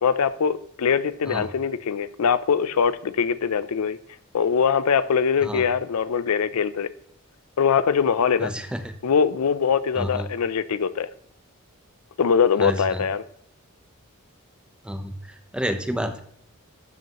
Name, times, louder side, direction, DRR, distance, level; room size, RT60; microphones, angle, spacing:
voice 1, 0.0-4.0 4.3-6.9 7.6-8.5 9.0-11.1 12.2-13.2, left 6 dB, 80° left, 15 dB, 0.5 m, -22 dB
voice 2, 8.4-8.8 10.0-10.3 12.6-13.0 14.8-16.2, equal, 5° right, 8 dB, 0.7 m, -30 dB
13.0 x 7.9 x 3.0 m, 0.71 s
head